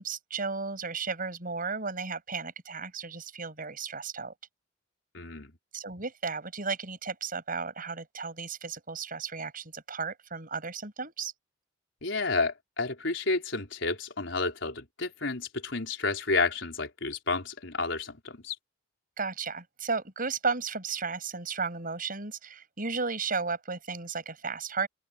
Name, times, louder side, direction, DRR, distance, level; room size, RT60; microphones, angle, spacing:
voice 1, 0.0-4.3 5.7-11.3 19.2-24.9, right 4 dB, 45° right, 7.3 m, -34 dB
voice 2, 5.1-5.5 12.0-18.6, left 3 dB, 70° left, 4.8 m, -31 dB
open air
head